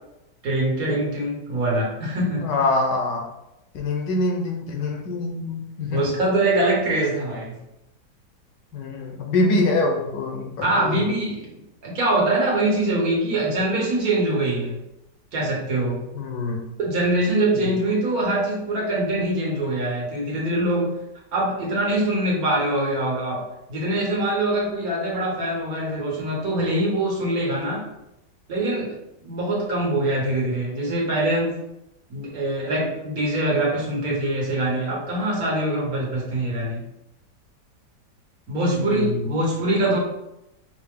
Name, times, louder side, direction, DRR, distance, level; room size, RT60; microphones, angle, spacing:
voice 1, 0.4-2.4 5.9-7.5 10.6-14.8 15.3-16.0 16.8-20.9 21.3-23.4 23.7-27.9 28.5-28.9 29.2-31.6 32.1-36.8 38.5-40.0, right 1 dB, 60° right, -3 dB, 1.6 m, -23 dB
voice 2, 2.4-3.3 3.7-6.0 8.7-11.0 16.1-16.6 17.5-17.8 38.6-39.4 39.7-40.0, left 2 dB, 90° left, 1 dB, 1.4 m, -25 dB
5.6 x 2.1 x 3.5 m, 0.89 s
omnidirectional pair, 1.9 m